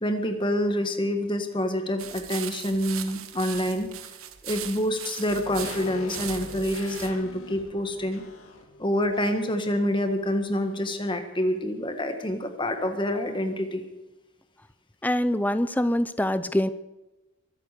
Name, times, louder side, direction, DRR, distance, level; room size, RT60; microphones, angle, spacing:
voice 1, 0.0-3.9 4.4-8.2 8.8-13.8, equal, 25° left, 6 dB, 1.6 m, -27 dB
sound 1, 2.0-7.1, right 11 dB, 85° right, 1.2 m, -39 dB
sound 2, 5.3-9.8 10.0-10.1, left 1 dB, 80° left, 2.2 m, -41 dB
voice 2, 15.0-16.7, left 1 dB, 10° left, 13 dB, 0.6 m, -24 dB
24.0 x 8.3 x 6.7 m, 1.0 s
head